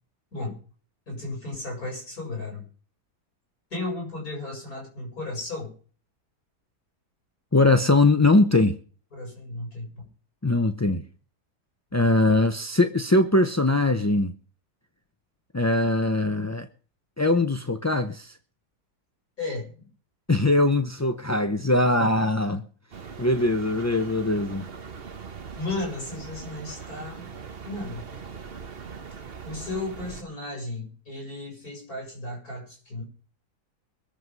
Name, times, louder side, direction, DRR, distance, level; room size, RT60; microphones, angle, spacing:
voice 1, 1.1-2.7 3.7-5.7 9.1-10.1 19.4-19.9 25.6-27.3 27.6-28.0 29.4-33.0, left 2 dB, 60° left, 7.9 m, -34 dB
voice 2, 7.5-8.8 10.4-11.0 11.9-14.3 15.5-16.7 17.2-18.3 20.3-22.6 23.2-24.7, left 2 dB, 20° left, 0.4 m, -21 dB
sound 1, 22.9-30.2, right 5 dB, 40° right, 1.3 m, -41 dB
23.5 x 7.9 x 5.5 m
omnidirectional pair, 1.7 m